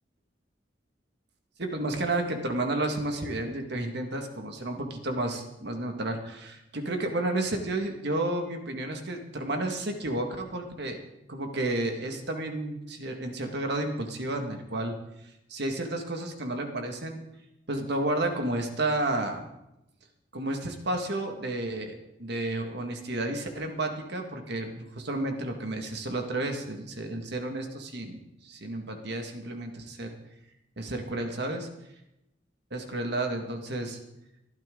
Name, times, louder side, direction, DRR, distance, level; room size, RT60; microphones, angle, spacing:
voice 1, 1.6-11.0 11.3-15.0 15.5-17.2 17.7-19.5 20.3-30.1 30.8-31.6 32.7-34.0, right 2 dB, 60° right, 4 dB, 2.0 m, -31 dB
22.0 x 12.0 x 3.9 m, 0.88 s
head